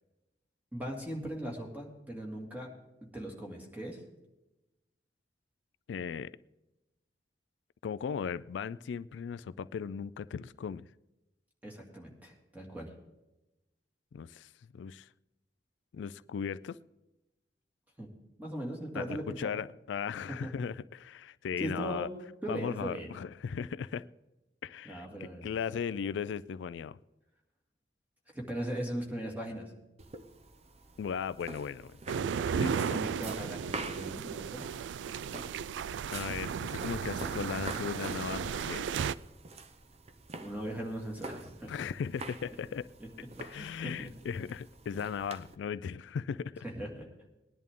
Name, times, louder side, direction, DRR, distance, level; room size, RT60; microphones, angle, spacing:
voice 1, 0.7-2.7 3.1-4.0 11.6-12.9 18.0-18.1 18.4-19.6 20.3-20.5 21.6-22.1 22.4-23.1 24.8-25.5 28.3-29.7 32.7-34.6 40.4-41.7 43.0-43.1 43.5-44.1 46.6-47.1, right 1 dB, 10° right, 0 dB, 2.2 m, -39 dB
voice 2, 5.9-6.3 7.8-10.8 14.1-15.1 15.9-16.8 18.9-22.1 22.5-24.1 24.6-27.0 31.0-31.9 32.5-33.0 36.1-38.8 41.7-42.9 43.4-46.6, left 7 dB, 80° left, 16 dB, 0.3 m, -37 dB
sound 1, 30.0-45.6, right 3 dB, 35° right, 0.7 m, -47 dB
sound 2, 32.1-39.1, right 7 dB, 80° right, 0.3 m, -35 dB
19.5 x 10.5 x 3.7 m, 0.98 s
head